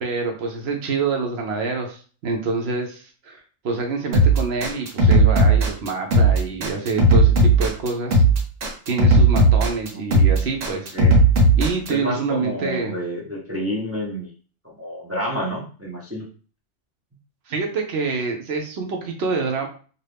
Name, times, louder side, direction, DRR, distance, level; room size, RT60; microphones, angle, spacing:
voice 1, 0.0-3.4 3.6-8.2 8.9-11.0 11.6-12.9 17.5-19.7, right 4 dB, 65° right, 2 dB, 0.8 m, -26 dB
sound 1, 4.1-11.9, right 2 dB, 85° right, 1.1 m, -16 dB
voice 2, 11.9-14.3 14.6-16.3, equal, 25° right, -3 dB, 0.3 m, -29 dB
2.6 x 2.3 x 3.3 m, 0.40 s
omnidirectional pair, 1.3 m